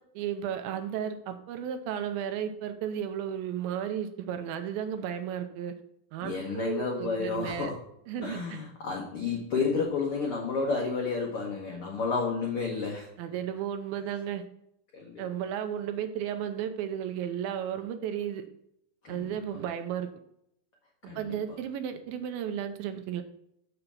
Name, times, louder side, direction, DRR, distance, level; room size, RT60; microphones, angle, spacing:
voice 1, 0.2-5.7 6.1-7.7 8.1-8.6 13.2-14.4 15.2-18.4 19.1-20.1 21.2-23.2, right 9 dB, 85° right, 8 dB, 2.4 m, -34 dB
voice 2, 6.2-7.8 8.2-13.1 14.9-15.2 19.0-19.6 21.1-21.4, left 4 dB, 75° left, -1 dB, 1.3 m, -31 dB
6.9 x 6.8 x 5.6 m, 0.77 s
omnidirectional pair, 4.4 m